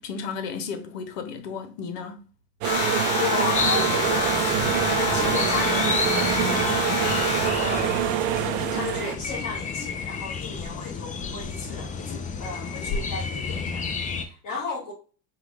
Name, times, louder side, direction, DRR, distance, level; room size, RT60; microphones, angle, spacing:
voice 1, 0.0-2.2, left 6 dB, 75° left, 1.0 m, -34 dB
sound 1, 2.6-8.8, left 4 dB, 55° left, 1.4 m, -28 dB
sound 2, 2.6-9.2, right 12 dB, 65° right, 0.6 m, -26 dB
voice 2, 3.1-7.1 7.6-14.9, left 4 dB, 40° left, 1.9 m, -34 dB
sound 3, 3.5-14.2, left 5 dB, 20° left, 0.4 m, -31 dB
4.7 x 2.4 x 3.3 m
hypercardioid pair, 95°, 48 cm